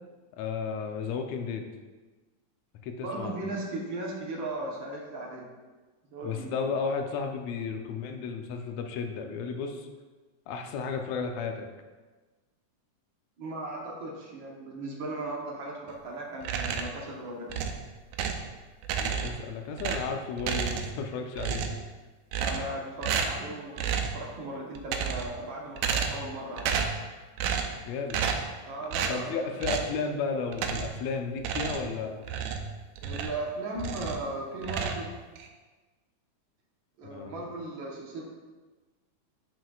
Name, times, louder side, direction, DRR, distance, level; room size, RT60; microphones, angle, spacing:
voice 1, 0.4-1.7 2.8-3.4 6.2-9.9 10.5-11.7 19.0-21.8 22.5-22.7 27.8-28.2 28.8-32.2 37.0-37.4, left 5 dB, 75° left, 3 dB, 1.8 m, -33 dB
voice 2, 3.0-5.5 6.1-6.7 13.4-17.5 22.4-26.8 28.6-29.3 33.0-35.1 37.0-38.2, right 2 dB, 60° right, -2 dB, 1.4 m, -37 dB
sound 1, 16.4-17.0 17.5-18.5 18.8-19.5 19.8-21.1 21.3-21.9 22.3-22.8 23.0-23.4 23.8-24.2 24.7-25.4 25.8-26.3 26.6-27.0 27.4-27.8 28.1-28.5 28.9-29.2 29.6-29.9 30.5-31.0 31.4-33.4 33.8-34.3 34.6-35.5, right 6 dB, 75° right, 1.9 m, -31 dB
11.0 x 6.2 x 2.4 m, 1.3 s
omnidirectional pair, 3.5 m